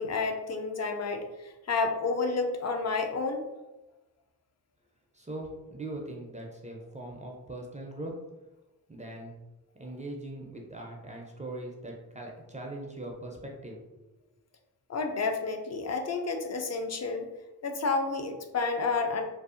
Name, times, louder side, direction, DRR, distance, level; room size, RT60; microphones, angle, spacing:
voice 1, 0.0-3.5 14.9-17.3 17.6-19.2, left 4 dB, 45° left, 5 dB, 0.4 m, -30 dB
voice 2, 5.1-8.2 8.9-9.3 9.8-14.0, right 1 dB, 20° right, -1 dB, 0.4 m, -41 dB
2.6 x 2.3 x 2.4 m, 1.1 s
cardioid pair, 65°, 39 cm